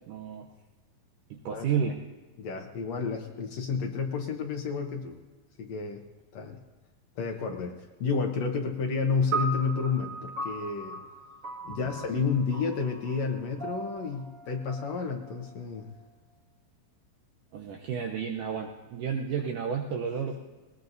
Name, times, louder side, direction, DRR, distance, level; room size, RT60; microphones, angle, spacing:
voice 1, 0.1-0.5 1.3-2.0 17.5-20.4, right 7 dB, 75° right, 2 dB, 1.9 m, -31 dB
voice 2, 2.4-5.2 5.6-6.0 6.3-6.6 7.2-11.0 11.6-15.9, left 5 dB, 75° left, 2 dB, 1.6 m, -31 dB
sound 1, 9.3-15.8, right 3 dB, 35° right, 1.3 m, -38 dB
20.5 x 19.5 x 2.7 m, 1.3 s
omnidirectional pair, 4.7 m